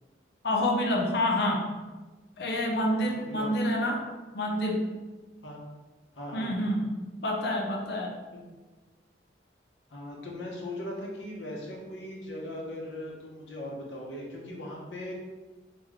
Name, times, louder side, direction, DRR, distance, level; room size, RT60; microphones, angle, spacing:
voice 1, 0.4-1.7 2.4-4.0 4.3-4.9 6.3-6.9 7.2-8.2, left 1 dB, 65° left, 1 dB, 0.6 m, -27 dB
voice 2, 3.0-3.6 5.4-5.7 6.1-6.5 8.3-8.4 9.9-15.1, left 1 dB, 90° left, -2 dB, 1.0 m, -39 dB
3.3 x 2.9 x 3.6 m, 1.2 s
head